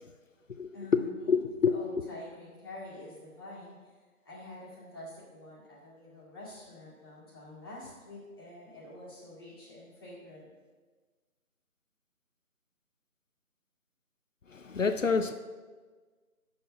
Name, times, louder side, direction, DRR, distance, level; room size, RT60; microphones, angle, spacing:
voice 1, 0.7-1.4 1.7-3.9 4.2-10.5, left 1 dB, 15° left, 2.1 m, -47 dB
voice 2, 1.3-2.1 14.5-15.3, left 5 dB, 60° left, 0.6 m, -28 dB
6.9 x 6.4 x 7.5 m
figure-of-eight pair, 170°, 44 cm